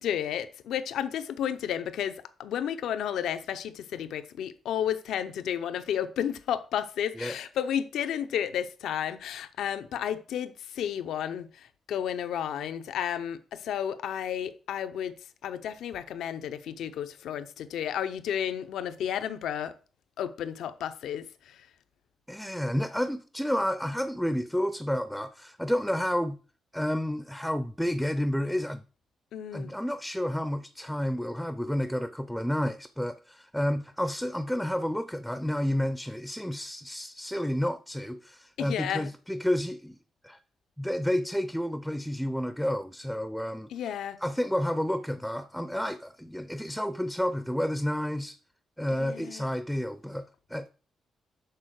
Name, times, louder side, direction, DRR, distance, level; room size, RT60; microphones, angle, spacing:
voice 1, 0.0-15.1 15.4-19.7 20.2-21.6 29.3-29.7 38.6-39.1 43.7-44.2 49.0-49.5, left 9 dB, 85° left, 0.6 m, -32 dB
voice 2, 22.3-26.4 26.7-28.8 29.5-40.0 40.2-40.4 40.8-43.9 44.2-48.4 48.8-50.7, equal, ahead, 0.4 m, -30 dB
6.6 x 3.8 x 6.4 m
cardioid pair, 100°, 0 cm